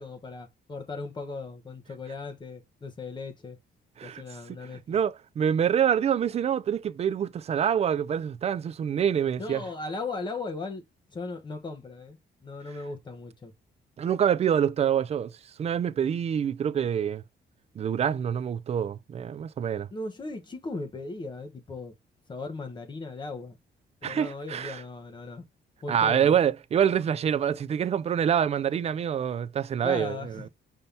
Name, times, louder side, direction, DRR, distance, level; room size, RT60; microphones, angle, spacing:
voice 1, 0.0-3.6 4.0-5.0 9.4-10.8 11.1-13.5 19.9-21.9 22.3-23.6 24.0-25.4 25.8-26.4 29.8-30.5, left 3 dB, 25° left, 0.9 m, -37 dB
voice 2, 4.5-9.6 14.0-15.3 15.6-17.2 17.8-19.9 24.0-24.8 25.9-30.4, right 8 dB, 35° right, 0.4 m, -26 dB
5.5 x 2.7 x 3.3 m
cardioid pair, 155°, 18 cm